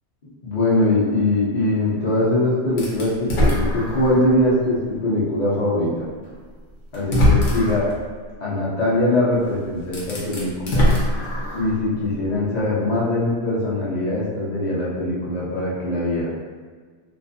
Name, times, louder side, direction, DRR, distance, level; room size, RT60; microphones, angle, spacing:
voice 1, 0.2-5.9 6.9-7.9 8.4-10.9 11.5-16.3, left 1 dB, 45° left, -7 dB, 0.6 m, -22 dB
sound 1, 2.8-4.4 4.9-5.0 6.3-6.4 6.9-7.9 9.3-9.4 9.8-11.8, left 1 dB, 85° left, 1.0 m, -21 dB
2.5 x 2.4 x 2.5 m, 1.5 s
omnidirectional pair, 1.2 m